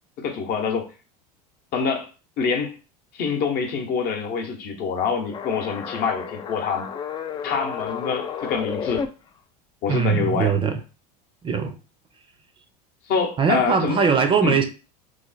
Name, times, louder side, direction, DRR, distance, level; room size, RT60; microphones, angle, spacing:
voice 1, 0.2-0.9 1.7-2.1 2.4-2.7 3.1-6.9 7.4-9.1 9.8-10.5 13.1-14.0 14.4-14.6, left 5 dB, 50° left, 0.8 m, -25 dB
sound 1, 5.2-9.1, left 7 dB, 20° left, 0.3 m, -32 dB
voice 2, 9.9-10.8 11.4-11.8 13.4-14.6, right 6 dB, 25° right, 0.5 m, -21 dB
3.1 x 2.0 x 4.0 m
supercardioid pair, 105°, 20 cm